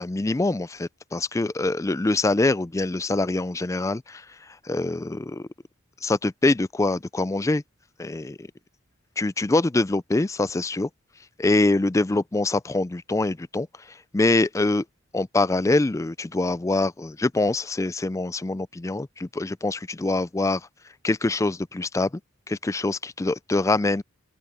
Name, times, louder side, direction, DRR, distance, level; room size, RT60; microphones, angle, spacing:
voice 1, 0.0-5.5 6.0-7.6 8.0-8.5 9.2-10.9 11.4-14.9 15.1-20.7 21.0-22.2 22.5-24.0, left 2 dB, 15° left, 0.4 m, -24 dB
open air
head